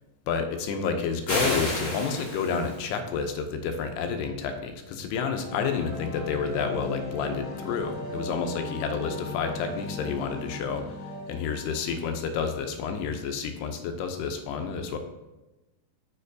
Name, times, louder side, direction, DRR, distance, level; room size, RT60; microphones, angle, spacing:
voice 1, 0.3-11.0 11.3-15.0, left 5 dB, 85° left, 6 dB, 2.7 m, -30 dB
sound 1, 1.3-2.9, left 1 dB, 35° left, 1.6 m, -30 dB
sound 2, 5.4-12.3, left 2 dB, 65° left, 2.0 m, -37 dB
6.9 x 6.5 x 2.7 m, 1.1 s
omnidirectional pair, 4.6 m